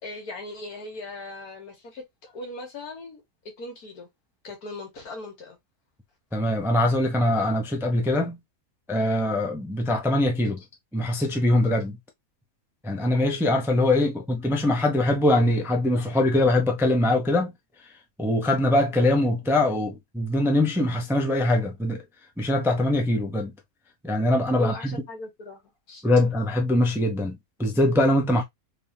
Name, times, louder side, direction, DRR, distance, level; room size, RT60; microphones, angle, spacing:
voice 1, 0.0-3.2 3.6-4.1 4.4-5.6 14.0-14.2 24.6-25.6 25.9-26.1, left 2 dB, 85° left, 1.9 m, -39 dB
voice 2, 6.3-8.4 8.9-10.6 10.9-12.0 12.8-17.5 18.2-22.0 22.4-23.5 24.0-25.0 26.0-28.4, left 1 dB, 5° right, 0.4 m, -22 dB
3.7 x 3.5 x 2.7 m
omnidirectional pair, 1.6 m